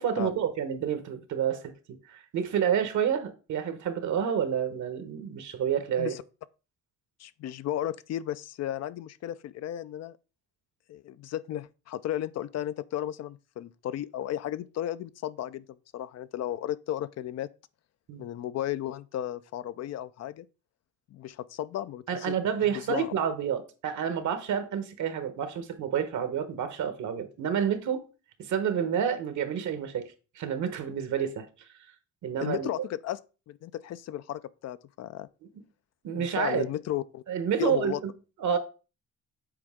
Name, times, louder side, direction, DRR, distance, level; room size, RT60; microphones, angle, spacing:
voice 1, 0.0-1.6 1.9-6.1 18.1-18.2 22.1-28.0 28.4-30.0 30.4-31.5 32.2-32.7 36.0-36.7 37.3-38.1 38.4-38.6, right 8 dB, 70° right, 1.2 m, -29 dB
voice 2, 7.2-10.2 10.9-17.5 18.2-20.5 21.1-22.4 22.7-23.1 32.4-33.2 33.5-35.3 36.1-37.2 37.6-38.0, left 12 dB, 60° left, 0.4 m, -34 dB
7.9 x 4.3 x 3.6 m
cardioid pair, 90°, 30 cm